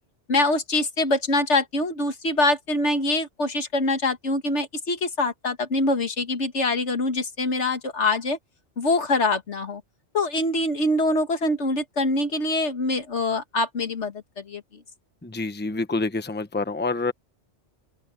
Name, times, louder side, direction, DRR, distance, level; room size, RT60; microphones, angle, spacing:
voice 1, 0.3-8.4 8.8-9.8 10.1-14.8, left 2 dB, 75° left, 2.0 m, -24 dB
voice 2, 15.2-17.1, left 3 dB, 10° left, 1.0 m, -27 dB
omnidirectional pair, 1.2 m